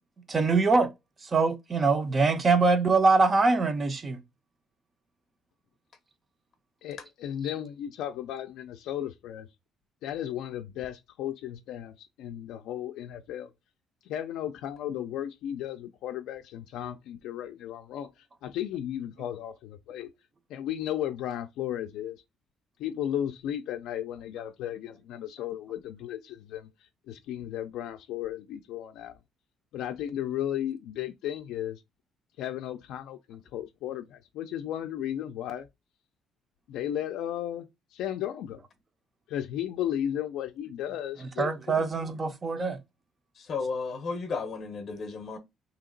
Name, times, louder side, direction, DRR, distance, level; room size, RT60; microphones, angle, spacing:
voice 1, 0.3-0.9 1.2-4.2 41.4-42.8, right 4 dB, 25° right, 0.4 m, -23 dB
voice 2, 6.8-9.5 10.0-13.5 14.1-20.1 20.5-22.2 22.8-26.7 27.1-29.2 29.7-31.8 32.4-35.7 36.7-38.6 39.3-41.9, left 11 dB, 80° left, 0.3 m, -35 dB
voice 3, 43.4-45.4, left 4 dB, 40° left, 0.6 m, -33 dB
2.8 x 2.8 x 3.8 m
cardioid pair, 160°, 0 cm